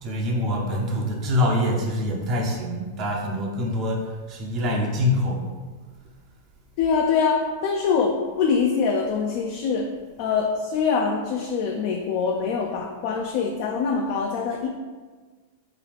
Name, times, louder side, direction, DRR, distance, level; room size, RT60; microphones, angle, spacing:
voice 1, 0.0-5.4, left 1 dB, 40° right, 0 dB, 0.6 m, -25 dB
voice 2, 6.8-9.9 10.2-14.7, left 5 dB, 50° left, 1 dB, 0.3 m, -24 dB
3.7 x 2.3 x 3.4 m, 1.4 s
hypercardioid pair, 100°, 0 cm